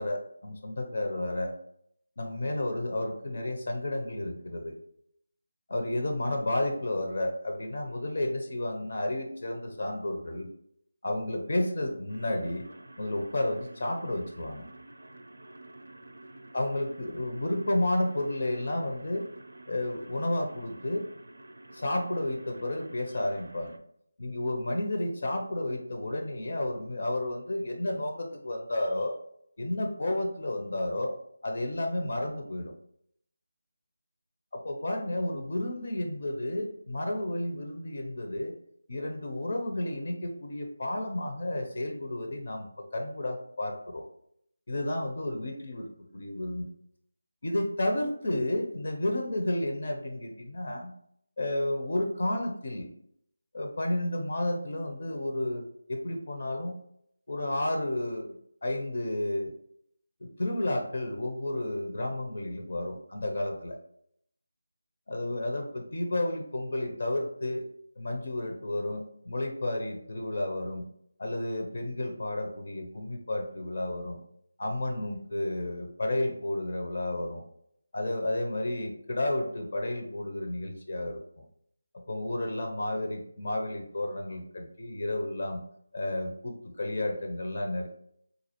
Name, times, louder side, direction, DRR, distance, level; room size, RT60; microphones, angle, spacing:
voice 1, 0.0-1.5 2.2-4.8 5.7-10.5 11.0-12.7 13.0-14.7 16.5-19.3 19.7-21.1 21.7-23.8 24.2-29.2 29.6-31.2 31.4-32.7 34.5-38.5 38.9-44.0 44.7-46.7 47.4-50.9 51.4-52.9 53.5-56.7 57.3-59.5 60.2-63.8 65.1-67.7 68.0-70.8 71.2-74.2 74.6-77.4 77.9-81.4 81.9-85.6 85.9-87.9, left 1 dB, 50° left, 3 dB, 0.5 m, -31 dB
sound 1, 12.1-23.8, right 2 dB, 90° right, 0.4 m, -50 dB
3.9 x 2.3 x 2.8 m, 0.70 s
figure-of-eight pair, 170°, 0 cm